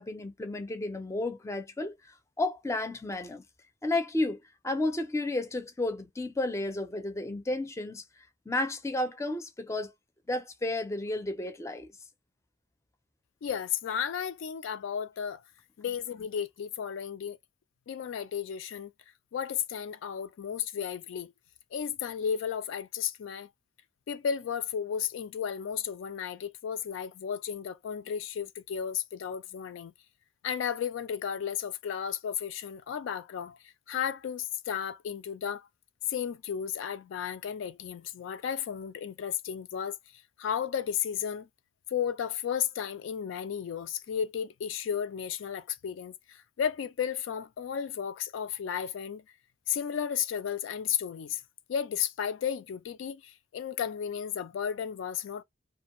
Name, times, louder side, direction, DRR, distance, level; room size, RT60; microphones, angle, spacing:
voice 1, 0.0-2.0 2.4-3.4 3.8-8.0 8.5-9.9 10.3-11.9, left 2 dB, 15° left, 0.4 m, -32 dB
voice 2, 13.4-15.4 15.8-17.4 17.9-18.9 19.3-21.3 21.7-23.5 24.1-29.9 30.4-35.7 36.1-40.0 40.4-41.5 41.9-49.2 49.7-51.4 51.7-55.4, left 8 dB, 80° left, 0.3 m, -33 dB
2.5 x 2.2 x 2.9 m
head